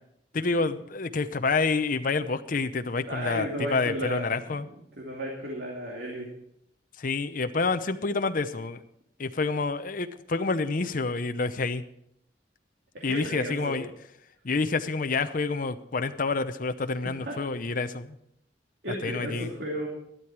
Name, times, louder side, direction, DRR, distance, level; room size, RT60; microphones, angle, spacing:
voice 1, 0.3-4.7 7.0-8.8 9.2-11.8 13.0-13.9 14.4-18.2 19.0-19.5, left 3 dB, 50° left, 9 dB, 0.7 m, -28 dB
voice 2, 3.1-4.7 5.0-6.3 13.0-13.8 17.2-17.4 18.8-19.9, equal, 65° right, -2 dB, 2.6 m, -34 dB
12.0 x 11.5 x 4.7 m, 0.73 s
head